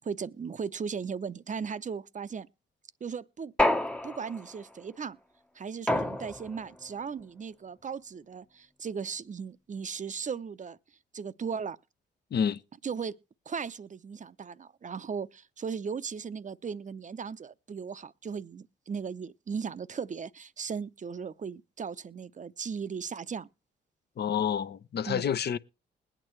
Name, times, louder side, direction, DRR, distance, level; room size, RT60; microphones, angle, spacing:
voice 1, 0.0-2.5 3.0-3.5 4.0-5.2 5.5-10.8 11.1-11.8 12.8-13.2 13.5-23.5 25.1-25.3, right 6 dB, 40° right, 0.7 m, -37 dB
sound 1, 3.6-4.6 5.9-6.7, left 1 dB, 5° left, 0.7 m, -28 dB
voice 2, 24.2-25.6, left 8 dB, 55° left, 0.7 m, -28 dB
21.0 x 8.9 x 3.1 m
supercardioid pair, 50°, 20 cm